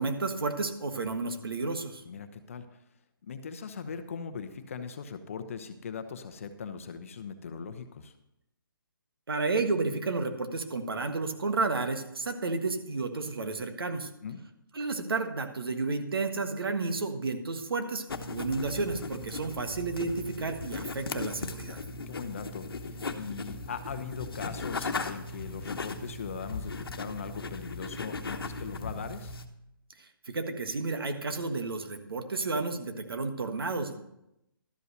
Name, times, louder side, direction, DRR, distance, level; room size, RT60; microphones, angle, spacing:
voice 1, 0.0-2.0 9.3-14.1 14.7-18.0 18.3-21.8 30.0-34.0, right 3 dB, 75° right, 6 dB, 1.5 m, -31 dB
voice 2, 2.0-2.8 3.2-8.1 14.2-14.4 22.1-29.3, left 6 dB, 35° left, 9 dB, 0.8 m, -40 dB
sound 1, 18.1-29.5, left 3 dB, 75° left, 1.1 m, -38 dB
12.5 x 5.4 x 6.6 m, 0.85 s
hypercardioid pair, 170°, 12 cm